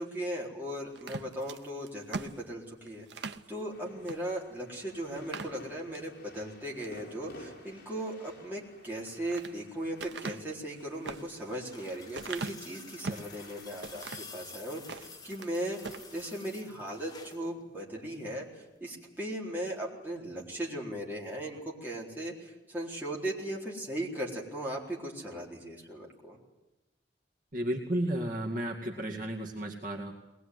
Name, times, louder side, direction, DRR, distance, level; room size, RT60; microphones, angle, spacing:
voice 1, 0.0-15.8 16.1-18.5 18.8-26.4, right 1 dB, 10° right, -3 dB, 4.2 m, -38 dB
sound 1, 1.0-3.5 4.0-4.2 4.6-4.7 5.1-6.1 6.6-7.0 8.8-9.6 10.0-13.3 13.8-14.4 14.8-15.5 15.8-16.1, right 4 dB, 75° right, 1.0 m, -41 dB
sound 2, 3.7-16.9 17.4-19.3 20.0-20.2, left 1 dB, 55° left, 5.4 m, -55 dB
sound 3, 10.7-17.5 18.8-18.9, left 4 dB, 20° left, 1.8 m, -50 dB
voice 2, 27.5-30.1, right 1 dB, 50° right, 0 dB, 2.3 m, -33 dB
21.5 x 20.0 x 9.6 m, 1.0 s
head